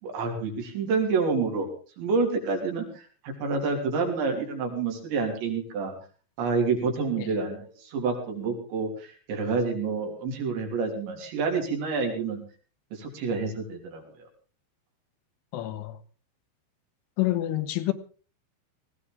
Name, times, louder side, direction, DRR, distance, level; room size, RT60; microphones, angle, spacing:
voice 1, 0.0-1.7 2.0-5.9 6.4-12.4 12.9-14.0, right 4 dB, 70° right, 5.3 m, -28 dB
voice 2, 15.5-16.0 17.2-17.9, left 16 dB, 80° left, 3.5 m, -28 dB
19.0 x 16.0 x 3.5 m
omnidirectional pair, 5.5 m